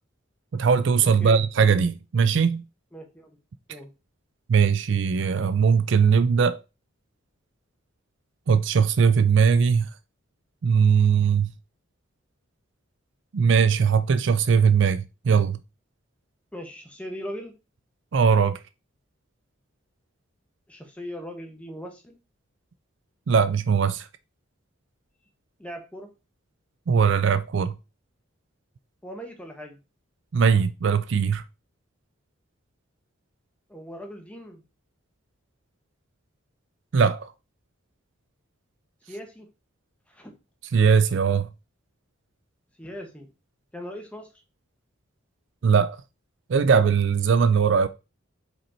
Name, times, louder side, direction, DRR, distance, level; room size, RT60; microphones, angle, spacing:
voice 1, 0.5-2.6 4.5-6.6 8.5-9.9 10.6-11.5 13.3-15.6 18.1-18.6 23.3-24.1 26.9-27.7 30.3-31.4 36.9-37.3 40.7-41.5 45.6-46.0 46.5-47.9, right 6 dB, 60° right, 0.4 m, -20 dB
voice 2, 2.9-3.4 3.7-3.9 16.5-17.5 20.7-22.2 25.6-26.1 29.0-29.8 33.7-34.6 39.1-39.5 40.1-40.3 42.8-43.3 43.7-44.3, equal, 5° left, 1.2 m, -39 dB
5.1 x 4.2 x 4.4 m
head